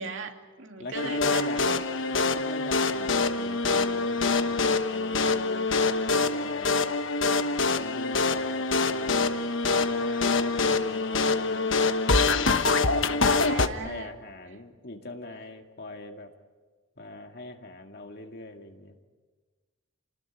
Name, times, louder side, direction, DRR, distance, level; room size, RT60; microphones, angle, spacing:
voice 1, 0.0-2.2 13.2-14.1, right 3 dB, 70° right, 3 dB, 2.7 m, -38 dB
voice 2, 0.8-1.7 2.1-5.7 6.1-7.0 7.8-11.7 12.4-13.5 13.8-16.3 17.0-19.0, left 2 dB, 55° left, 4 dB, 2.2 m, -41 dB
sound 1, 0.9-13.7, left 3 dB, 70° left, 1.2 m, -25 dB
30.0 x 19.5 x 9.4 m, 1.5 s
head